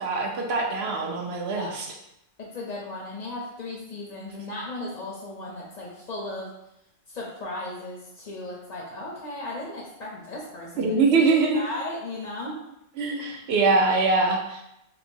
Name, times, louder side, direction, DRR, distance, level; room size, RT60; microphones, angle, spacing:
voice 1, 0.0-1.9 10.8-11.6 13.0-14.6, right 3 dB, 65° right, 1 dB, 0.7 m, -23 dB
voice 2, 2.4-6.5 7.1-11.0 11.5-12.6, left 2 dB, 50° left, -3 dB, 0.5 m, -36 dB
3.4 x 2.9 x 2.6 m, 0.83 s
omnidirectional pair, 1.3 m